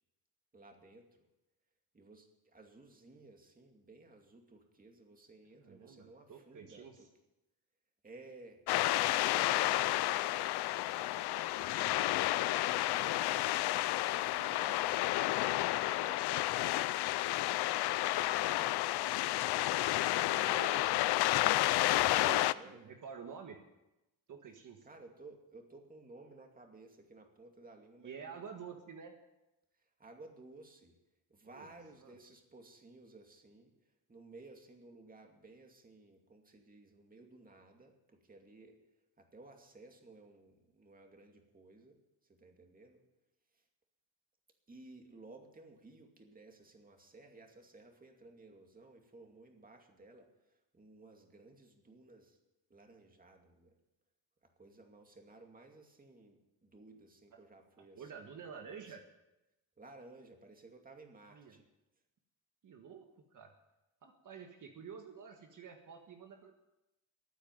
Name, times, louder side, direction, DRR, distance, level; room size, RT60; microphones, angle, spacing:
voice 1, 0.5-1.1 1.9-7.1 8.0-8.6 8.9-13.7 14.1-16.9 17.1-17.2 18.0-19.1 22.3-22.9 24.8-28.7 30.0-31.0 31.3-33.7 34.1-38.8 39.2-42.0 42.3-43.0 44.7-50.3 50.7-52.4 52.7-53.7 54.6-58.3 58.7-59.0 59.8-61.7, right 2 dB, 20° right, 3 dB, 2.4 m, -56 dB
voice 2, 5.6-7.1 18.7-18.9 20.2-21.0 22.3-23.6 24.3-24.9 28.0-29.2 31.4-31.7 32.0-32.1 58.0-59.0 61.3-61.6 62.6-63.0 63.3-63.5 64.0-66.5, right 6 dB, 50° right, 4 dB, 1.6 m, -49 dB
sound 1, 8.7-22.5, left 16 dB, 80° left, 0.6 m, -31 dB
14.0 x 9.1 x 9.2 m, 0.96 s
cardioid pair, 115°, 38 cm